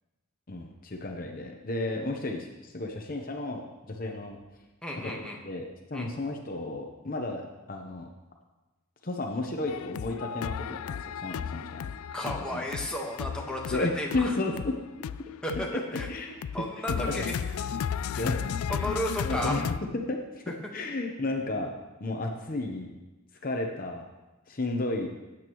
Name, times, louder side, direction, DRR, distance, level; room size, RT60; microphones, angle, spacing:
voice 1, 0.5-4.4 5.0-7.4 7.7-8.1 9.0-11.9 12.2-12.6 13.7-14.7 15.7-16.4 16.9-17.0 18.2-18.9 19.2-19.6 20.1-20.4 20.7-21.7 22.0-22.9 23.4-24.0 24.5-25.1, left 2 dB, 40° left, 2 dB, 0.9 m, -33 dB
voice 2, 4.8-5.4 5.9-6.1 12.1-14.3 15.4-15.7 15.9-16.1 16.5-17.4 18.1-18.2 18.7-19.6 20.5-20.6, equal, 5° left, -2 dB, 1.3 m, -33 dB
sound 1, 9.7-19.8, left 7 dB, 80° left, 0.3 m, -34 dB
16.0 x 8.7 x 3.1 m, 1.1 s
head